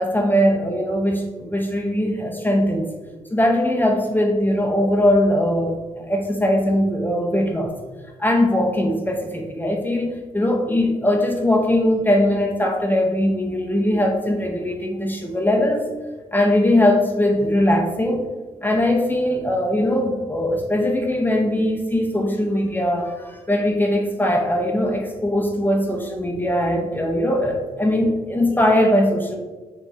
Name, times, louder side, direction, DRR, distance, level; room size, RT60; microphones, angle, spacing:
voice 1, 0.0-2.9 3.3-7.7 8.2-15.9 16.3-18.2 18.6-29.4, left 1 dB, 15° left, 1 dB, 0.6 m, -20 dB
4.4 x 2.9 x 2.8 m, 1.3 s
cardioid pair, 70°, 15 cm